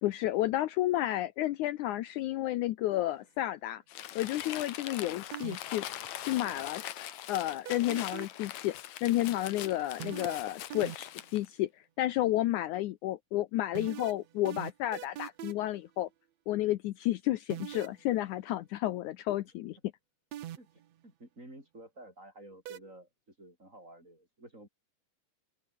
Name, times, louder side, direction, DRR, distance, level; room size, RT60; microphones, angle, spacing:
voice 1, 0.0-3.8 4.2-5.9 6.2-6.8 7.3-8.8 9.0-11.7 12.0-16.1 16.5-19.8, left 15 dB, 85° left, 1.7 m, -31 dB
Crumpling crinkling, 3.9-11.5, left 12 dB, 65° left, 2.0 m, -42 dB
voice 2, 4.8-5.3 20.6-24.7, right 1 dB, 20° right, 8.4 m, -52 dB
sound 1, 5.3-5.8 7.7-8.5 10.0-11.2 13.8-15.8 17.5-18.0 20.3-20.9 22.7-22.8, right 12 dB, 65° right, 1.8 m, -41 dB
open air
omnidirectional pair, 4.5 m